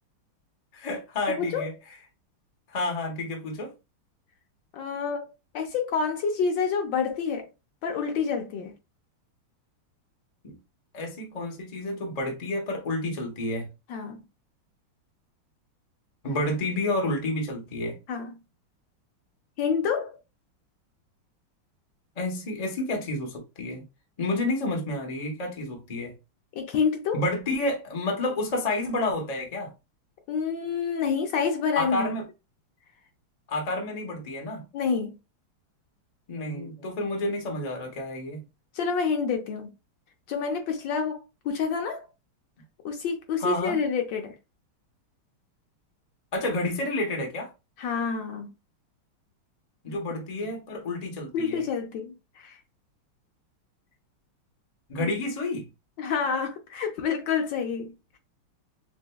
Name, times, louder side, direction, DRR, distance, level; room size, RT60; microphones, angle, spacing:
voice 1, 0.7-1.7 2.7-3.7 10.4-10.6 10.9-13.7 16.2-18.0 22.2-23.9 24.2-26.1 27.1-29.7 31.8-32.2 33.5-34.7 36.3-38.4 43.4-43.8 46.3-47.5 49.8-51.6 54.9-55.7, left 2 dB, 50° left, 0.4 m, -30 dB
voice 2, 1.2-1.7 4.7-7.5 7.8-8.7 13.9-14.2 18.1-18.4 19.6-20.2 26.5-27.2 30.3-32.1 34.7-35.2 38.7-39.7 40.3-42.1 42.8-44.4 47.8-48.5 49.9-50.0 51.3-52.6 56.0-58.2, left 6 dB, 70° left, 1.2 m, -28 dB
6.1 x 2.2 x 2.2 m
omnidirectional pair, 2.4 m